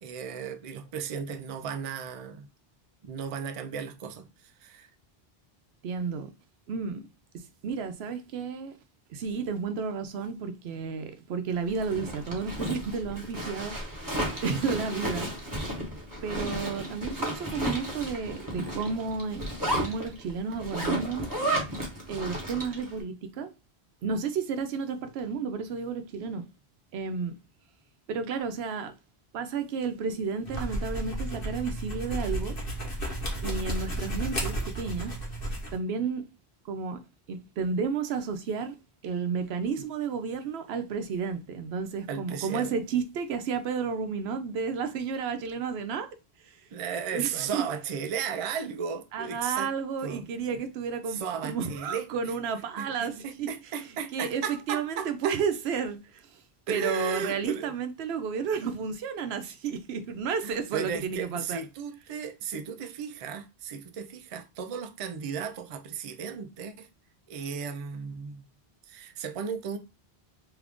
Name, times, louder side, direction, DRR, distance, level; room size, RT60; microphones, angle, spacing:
voice 1, 0.0-2.5 3.0-4.9 14.5-14.8 42.1-42.8 46.7-49.7 50.0-50.6 51.1-52.3 52.8-55.4 56.7-57.7 60.4-66.9 67.3-68.5 68.9-69.8, right 6 dB, 50° right, 0.4 m, -35 dB
voice 2, 5.8-6.3 6.7-7.1 7.3-8.7 9.1-13.8 14.4-15.3 16.2-21.3 22.1-23.5 24.0-26.4 26.9-27.3 28.1-28.9 29.3-32.6 33.4-35.1 35.7-36.2 36.6-37.0 37.3-38.7 39.0-46.1 46.5-46.6 47.1-47.6 49.1-53.5 54.1-56.4 56.7-61.6, right 5 dB, 85° right, 0.8 m, -32 dB
Zipper (clothing), 11.7-22.9, right 1 dB, 20° right, 0.9 m, -33 dB
sound 1, 30.4-35.8, right 1 dB, 60° left, 1.3 m, -33 dB
3.0 x 2.4 x 3.4 m
omnidirectional pair, 1.0 m